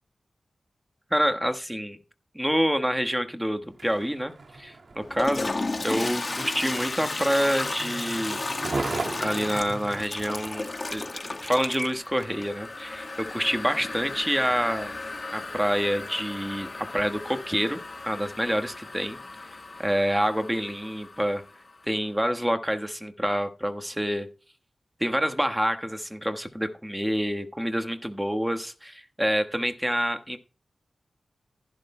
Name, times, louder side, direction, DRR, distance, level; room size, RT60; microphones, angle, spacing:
voice 1, 1.1-2.0 2.3-4.3 4.6-5.5 5.8-8.4 9.2-11.1 11.4-15.0 15.3-17.8 18.0-19.2 19.8-21.4 21.9-24.3 25.0-30.4, equal, 5° right, 7 dB, 1.3 m, -27 dB
Skateboard, 3.6-12.5 13.1-13.2, right 3 dB, 65° right, 1.9 m, -38 dB
Toilet flush, 5.0-21.8, left 3 dB, 45° left, 1.3 m, -35 dB
15.0 x 11.5 x 2.2 m, 0.34 s
wide cardioid pair, 75°, 0 cm